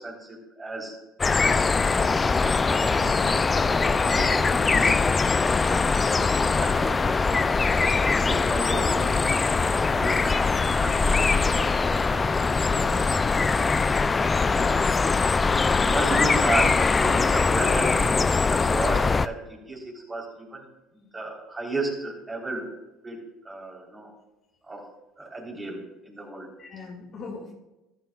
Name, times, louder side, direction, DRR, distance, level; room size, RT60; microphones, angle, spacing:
voice 1, 0.0-2.1 2.4-2.9 3.4-7.5 8.0-12.9 13.5-13.8 14.5-14.8 15.8-20.7 20.9-22.7 23.0-23.2 23.4-24.1 24.7-24.8 25.2-26.5, right 2 dB, 20° right, -1 dB, 3.8 m, -34 dB
sound 1, 1.2-19.3, left 4 dB, 25° left, 0.4 m, -22 dB
voice 2, 2.6-3.5 12.7-12.9 14.5-14.9 26.6-27.5, left 4 dB, 45° left, 1 dB, 2.1 m, -39 dB
14.0 x 11.5 x 2.4 m, 0.99 s
supercardioid pair, 85°, 0 cm